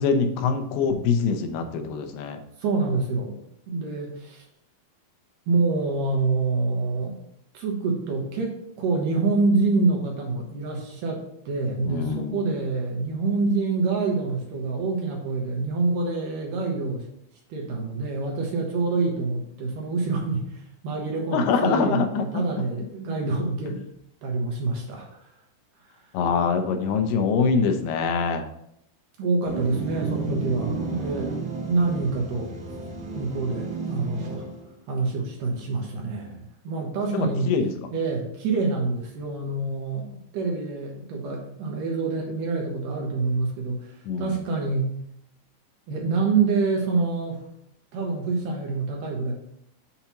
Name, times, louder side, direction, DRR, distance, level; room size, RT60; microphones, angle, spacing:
voice 1, 0.0-2.4 11.8-12.5 21.3-22.7 26.1-28.5 37.1-37.7 44.1-44.4, left 5 dB, 85° left, 6 dB, 2.8 m, -24 dB
voice 2, 2.6-3.4 3.7-4.4 5.5-7.2 7.5-17.1 17.5-23.8 24.2-25.3 29.2-31.3 31.7-32.5 33.1-34.5 34.9-37.5 37.9-44.9 45.9-47.4 47.9-49.3, right 3 dB, 75° right, 0 dB, 2.1 m, -26 dB
sound 1, 29.4-34.7, right 4 dB, 55° right, 1.3 m, -32 dB
7.0 x 2.9 x 5.6 m, 0.75 s
omnidirectional pair, 4.5 m